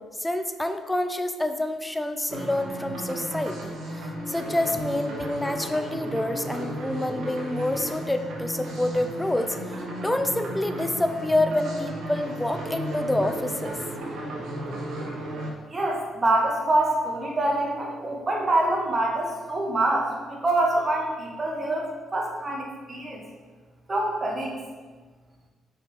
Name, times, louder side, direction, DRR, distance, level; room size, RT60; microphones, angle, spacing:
voice 1, 0.0-13.7, left 1 dB, 10° left, 8 dB, 0.6 m, -27 dB
sound 1, 2.3-15.5, right 1 dB, 70° right, 1.8 m, -34 dB
voice 2, 15.7-23.3 23.9-24.6, right 2 dB, 30° right, -1 dB, 1.9 m, -25 dB
6.9 x 5.1 x 5.2 m, 1.3 s
cardioid pair, 90°, 0 cm